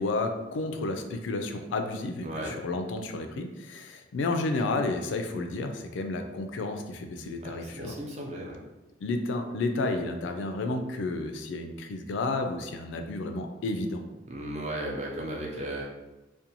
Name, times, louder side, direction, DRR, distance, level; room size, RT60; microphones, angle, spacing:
voice 1, 0.0-7.9 9.0-14.0, left 2 dB, 80° left, 6 dB, 0.3 m, -31 dB
voice 2, 2.2-2.5 7.4-8.6 14.3-15.8, right 1 dB, 35° right, -2 dB, 0.5 m, -35 dB
2.5 x 2.2 x 2.8 m, 1.0 s
head